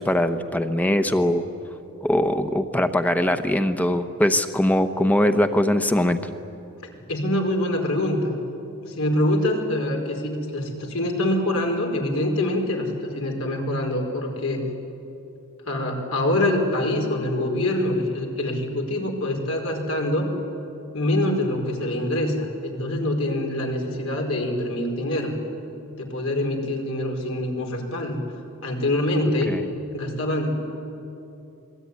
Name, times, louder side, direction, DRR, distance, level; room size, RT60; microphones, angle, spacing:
voice 1, 0.0-1.4 2.0-6.2 29.5-29.6, left 1 dB, 5° left, 8 dB, 1.0 m, -21 dB
voice 2, 7.1-8.4 8.8-14.6 15.6-20.3 20.9-25.3 26.0-28.2 28.6-29.5 29.9-30.8, left 1 dB, 75° left, 2 dB, 4.7 m, -25 dB
27.0 x 21.5 x 9.7 m, 2.8 s
head